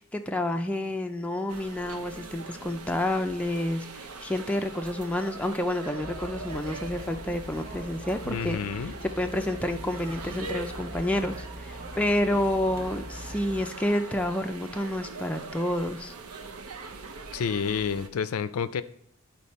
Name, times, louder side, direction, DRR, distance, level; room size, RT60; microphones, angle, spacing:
voice 1, 0.0-8.9 9.2-16.1, left 1 dB, 5° left, 4 dB, 0.4 m, -29 dB
sound 1, 1.5-18.1, right 3 dB, 75° right, 0.8 m, -42 dB
sound 2, 6.0-13.6, equal, 40° right, 0.9 m, -41 dB
voice 2, 8.2-8.9 17.3-18.8, left 6 dB, 75° left, 14 dB, 0.4 m, -29 dB
12.0 x 4.3 x 4.2 m, 0.67 s
head